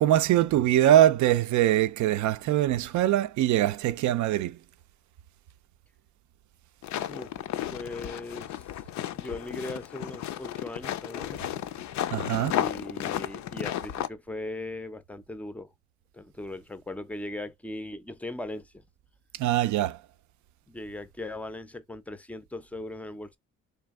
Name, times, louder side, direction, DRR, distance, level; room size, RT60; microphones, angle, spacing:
voice 1, 0.0-4.6 12.1-12.6 19.4-20.0, right 12 dB, 70° right, 0.4 m, -23 dB
sound 1, 6.8-14.1, left 12 dB, 65° left, 0.4 m, -33 dB
voice 2, 7.0-7.3 7.7-8.7 9.1-11.4 12.5-15.7 16.1-18.8 20.7-23.4, left 2 dB, 5° left, 0.4 m, -39 dB
3.4 x 2.9 x 3.5 m
cardioid pair, 90°, 30 cm